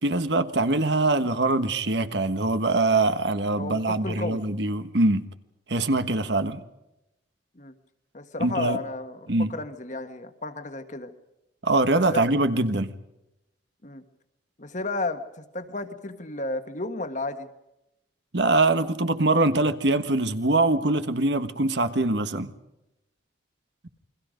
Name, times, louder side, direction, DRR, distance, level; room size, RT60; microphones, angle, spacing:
voice 1, 0.0-5.2 5.7-6.6 8.4-8.8 9.3-9.5 11.6-12.9 18.3-22.5, right 2 dB, 70° right, 1.5 m, -23 dB
voice 2, 3.6-4.4 7.5-7.7 8.1-11.1 11.9-12.2 13.8-14.0 14.6-17.5, left 2 dB, 40° left, 1.5 m, -33 dB
29.0 x 23.0 x 5.2 m
head